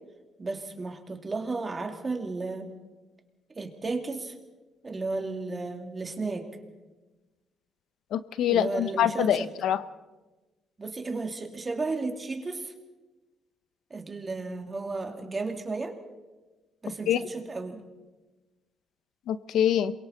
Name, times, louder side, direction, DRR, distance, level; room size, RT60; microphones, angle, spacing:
voice 1, 0.4-2.7 3.5-4.3 4.8-6.5 8.5-9.5 10.8-12.7 13.9-16.0 16.8-17.8, right 3 dB, 30° right, 4 dB, 2.8 m, -33 dB
voice 2, 8.1-9.8 17.1-17.2 19.3-19.9, left 10 dB, 80° left, 14 dB, 0.8 m, -25 dB
27.0 x 22.5 x 4.3 m, 1.2 s
cardioid pair, 90°, 0 cm